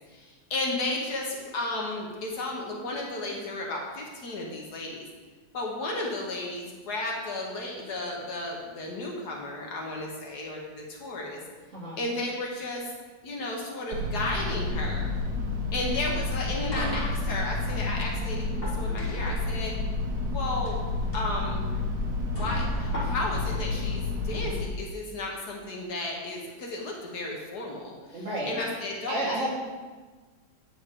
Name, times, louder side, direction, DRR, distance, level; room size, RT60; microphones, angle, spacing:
voice 1, 0.1-5.0 5.5-11.4 12.0-12.8 13.2-15.1 15.7-19.7 20.3-20.8 21.1-21.7 22.3-29.5, left 2 dB, 60° left, -1 dB, 1.5 m, -33 dB
cargo hold ventilation, 13.9-24.7, left 2 dB, 60° right, 1.2 m, -30 dB
sound 1, 16.2-17.9 18.4-19.5 20.5-20.7 21.1-21.2 21.7-21.8 22.3-23.5, left 1 dB, 30° left, 1.9 m, -37 dB
voice 2, 28.1-28.6 29.1-29.5, right 1 dB, 40° right, -5 dB, 1.9 m, -30 dB
8.9 x 6.2 x 3.7 m, 1.4 s
omnidirectional pair, 2.0 m